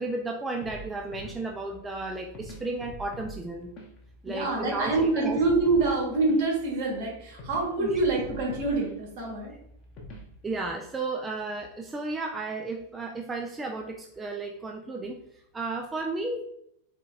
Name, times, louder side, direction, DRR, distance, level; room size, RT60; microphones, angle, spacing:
voice 1, 0.0-3.7 4.2-5.4 5.9-6.0 7.8-8.0 10.4-16.4, right 3 dB, 15° right, 2 dB, 0.3 m, -34 dB
sound 1, 0.6-10.7, equal, 35° left, 0.8 m, -45 dB
voice 2, 4.3-9.5, right 3 dB, 50° right, -2 dB, 1.4 m, -26 dB
4.1 x 2.8 x 2.4 m, 0.73 s
figure-of-eight pair, 90°, 0 cm